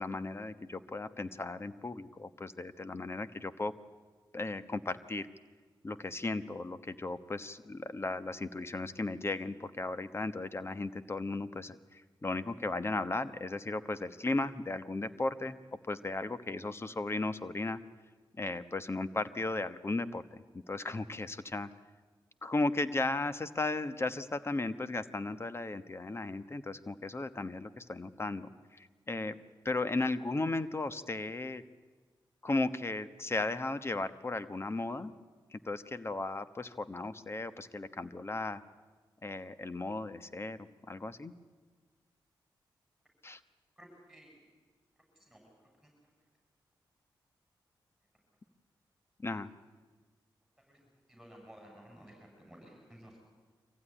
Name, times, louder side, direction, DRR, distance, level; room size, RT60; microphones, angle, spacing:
voice 1, 0.0-3.8 4.3-5.3 5.8-15.6 15.9-17.8 18.3-21.7 22.4-29.4 29.6-31.6 32.4-35.1 35.5-38.6 39.2-40.6 40.9-41.3 43.2-43.4 49.2-49.5, left 2 dB, 30° left, 12 dB, 1.1 m, -36 dB
voice 2, 43.8-44.3 45.3-45.5 50.7-50.8 51.1-53.2, equal, ahead, 0 dB, 7.5 m, -54 dB
24.5 x 15.5 x 10.0 m, 1.4 s
cardioid pair, 70°, 8 cm